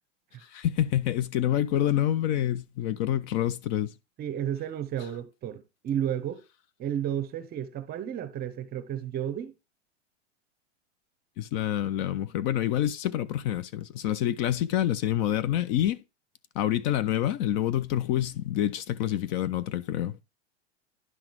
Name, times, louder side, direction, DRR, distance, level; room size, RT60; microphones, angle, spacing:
voice 1, 0.4-3.9 11.4-16.0 16.6-20.2, left 12 dB, 40° left, 0.5 m, -27 dB
voice 2, 4.2-6.4 6.8-9.5, right 10 dB, 25° right, 0.9 m, -32 dB
11.0 x 3.9 x 4.6 m
hypercardioid pair, 130°, 36 cm